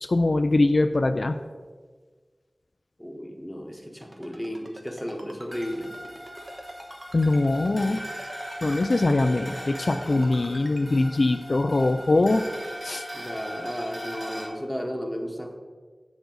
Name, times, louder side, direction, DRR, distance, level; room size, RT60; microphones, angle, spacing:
voice 1, 0.0-1.4 7.1-8.0 8.6-12.4 12.8-13.1, left 2 dB, 60° left, 8 dB, 0.3 m, -22 dB
voice 2, 3.0-5.9 13.1-15.6, equal, 5° left, 2 dB, 1.1 m, -34 dB
Ringtone, 4.0-10.8, right 1 dB, 40° right, 1.2 m, -45 dB
sound 1, 5.5-14.5, equal, 20° right, 1.9 m, -39 dB
8.1 x 7.0 x 3.9 m, 1.5 s
wide cardioid pair, 65°, 0 cm